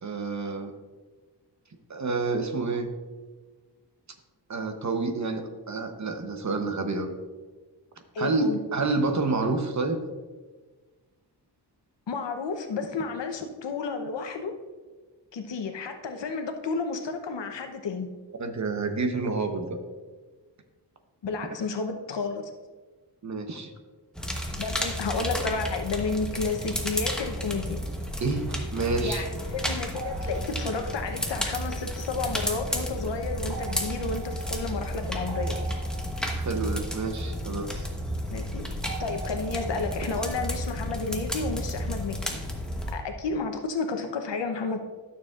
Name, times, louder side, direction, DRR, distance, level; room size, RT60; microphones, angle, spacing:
voice 1, 0.0-0.7 1.9-2.9 4.5-7.1 8.2-10.0 18.4-19.8 23.2-23.7 28.2-29.2 36.4-37.9, right 3 dB, 40° right, 6 dB, 0.9 m, -28 dB
voice 2, 8.1-8.6 12.1-14.5 15.3-18.1 21.2-22.5 24.5-27.8 29.0-35.7 38.3-38.6 39.0-42.2 42.9-44.8, left 4 dB, 90° left, 5 dB, 0.9 m, -31 dB
sound 1, 24.2-42.9, equal, ahead, 1.0 m, -32 dB
sound 2, 29.9-32.7 33.5-38.0 38.8-40.6, right 5 dB, 80° right, 1.2 m, -44 dB
12.5 x 6.9 x 2.4 m, 1.4 s
wide cardioid pair, 130°, 42 cm